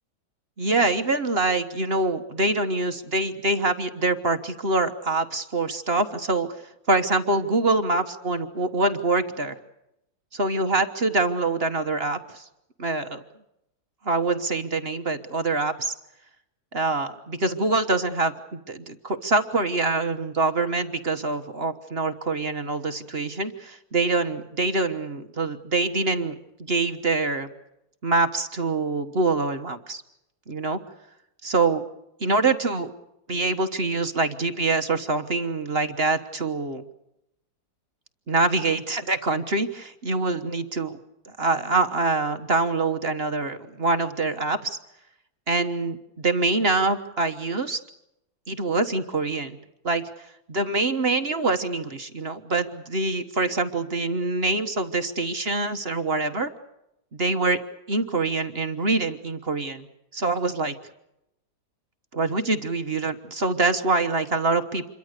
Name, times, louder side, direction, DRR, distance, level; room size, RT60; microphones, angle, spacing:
voice 1, 0.6-6.6 6.9-9.6 10.3-12.5 12.8-13.2 14.0-15.9 16.7-26.4 26.7-27.5 28.0-30.0 30.5-30.8 31.4-31.8 32.2-32.9 33.3-36.8 38.3-41.0 41.4-44.8 45.5-47.8 48.5-49.6 49.8-56.5 57.1-57.6 57.9-59.9 60.1-60.7 62.1-64.9, right 3 dB, 35° right, 7 dB, 1.3 m, -25 dB
27.5 x 23.0 x 6.7 m, 0.84 s
omnidirectional pair, 2.1 m